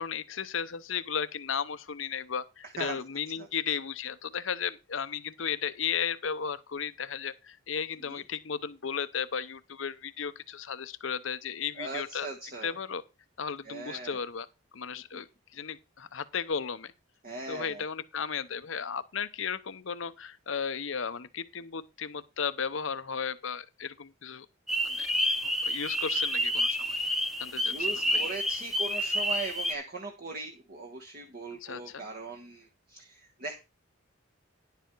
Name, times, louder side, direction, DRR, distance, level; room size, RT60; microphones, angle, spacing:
voice 1, 0.0-12.3 12.6-13.0 13.4-14.5 14.7-15.3 15.5-16.9 17.5-24.5 24.8-25.1 25.4-27.0 27.4-27.9 31.6-32.0, left 7 dB, 70° left, 0.8 m, -35 dB
voice 2, 2.6-3.0 3.4-3.5 8.1-8.2 11.8-12.8 13.6-14.2 15.1-15.2 17.2-17.8 27.6-33.5, right 3 dB, 45° right, 1.3 m, -39 dB
sound 1, 24.7-29.7, equal, ahead, 0.9 m, -29 dB
10.5 x 6.9 x 4.6 m
head